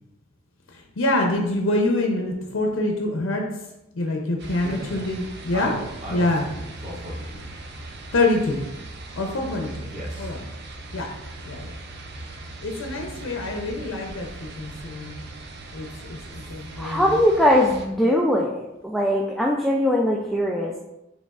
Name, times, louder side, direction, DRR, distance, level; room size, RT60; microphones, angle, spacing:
voice 1, 0.7-3.5 3.9-5.8 6.1-6.5 8.1-8.6 9.1-9.9 10.2-10.4 10.9-11.1 11.5-11.7 12.6-15.2 15.7-17.2, left 2 dB, 80° left, 2 dB, 0.6 m, -25 dB
sound 1, 4.4-17.9, right 2 dB, 60° right, 0.5 m, -39 dB
voice 2, 4.6-5.0 5.5-7.6 9.9-10.3 13.2-13.3, right 1 dB, 40° right, -4 dB, 1.0 m, -36 dB
voice 3, 16.8-20.8, equal, ahead, -2 dB, 0.3 m, -21 dB
5.1 x 3.2 x 2.4 m, 0.91 s
head